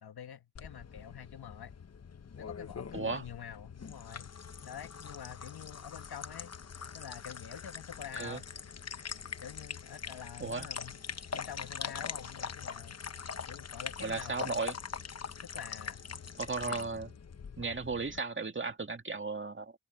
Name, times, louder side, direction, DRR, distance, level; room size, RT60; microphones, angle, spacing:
voice 1, 0.0-1.7 2.4-4.3 4.6-6.5 6.9-8.4 9.4-11.0 11.3-13.0 13.5-14.6 15.4-16.0, left 9 dB, 75° left, 1.6 m, -46 dB
sound 1, 0.6-18.2, left 6 dB, 40° left, 1.0 m, -43 dB
voice 2, 2.9-3.2 8.1-8.4 10.4-10.7 14.0-14.8 16.4-17.1 17.6-19.7, right 4 dB, 30° right, 2.2 m, -35 dB
open air
cardioid pair, 85°, 38 cm